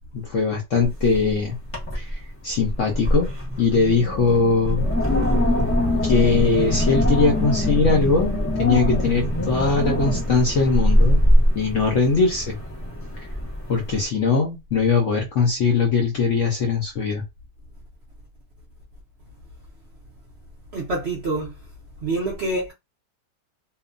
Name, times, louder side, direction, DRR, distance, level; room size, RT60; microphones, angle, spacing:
voice 1, 0.1-1.6 1.9-2.1 2.4-3.3 3.6-4.9 5.6-5.7 6.0-11.2 11.6-12.6 13.7-17.2, left 4 dB, 65° left, 0.8 m, -21 dB
Wind, 0.8-1.3 1.6-2.1 2.5-14.0, equal, 20° left, 0.4 m, -22 dB
voice 2, 20.7-21.5 22.0-22.7, right 2 dB, 65° right, 0.6 m, -26 dB
2.9 x 2.1 x 2.4 m
omnidirectional pair, 1.9 m